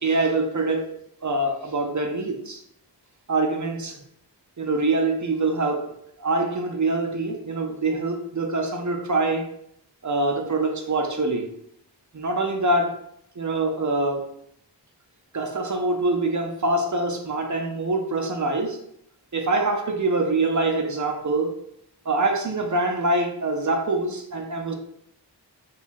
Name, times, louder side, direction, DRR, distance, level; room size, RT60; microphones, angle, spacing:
voice 1, 0.0-0.9 1.2-2.6 3.3-4.0 4.6-5.9 6.2-9.5 10.0-11.5 12.1-13.0 13.4-14.2 15.3-18.8 19.3-21.5 22.1-24.7, right 2 dB, 45° right, 3 dB, 0.5 m, -24 dB
2.8 x 2.3 x 4.1 m, 0.72 s
wide cardioid pair, 40°, 43 cm